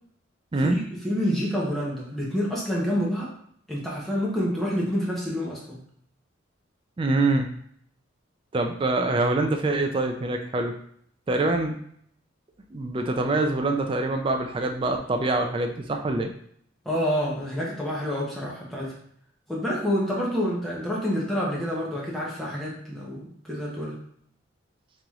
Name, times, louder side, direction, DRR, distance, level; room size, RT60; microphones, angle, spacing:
voice 1, 0.6-3.3 3.7-5.8 16.8-19.0 19.5-24.0, equal, ahead, -5 dB, 0.9 m, -28 dB
voice 2, 7.0-7.5 8.5-10.7 11.3-11.8 12.7-16.3, right 2 dB, 25° right, 4 dB, 0.3 m, -25 dB
3.1 x 2.9 x 3.6 m, 0.65 s
head